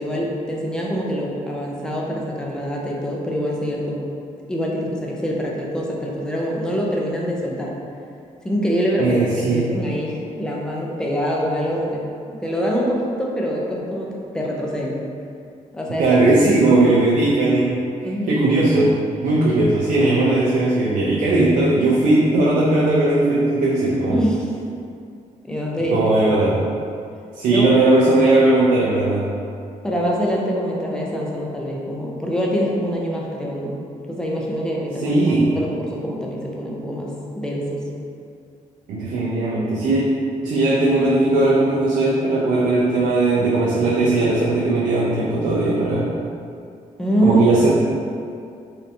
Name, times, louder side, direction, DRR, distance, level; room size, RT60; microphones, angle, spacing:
voice 1, 0.0-4.1 4.5-7.8 8.4-15.0 15.7-16.2 18.0-18.4 24.1-24.5 25.4-26.3 27.5-27.7 29.8-33.8 34.1-37.9 47.0-47.4, equal, 5° left, -3 dB, 0.4 m, -24 dB
voice 2, 9.0-9.7 16.0-17.8 18.3-24.2 25.9-26.6 27.3-29.3 35.0-35.6 38.9-40.1 40.4-46.2 47.2-47.7, right 2 dB, 80° right, -5 dB, 0.4 m, -18 dB
3.3 x 2.6 x 2.6 m, 2.4 s
cardioid pair, 155°, 14 cm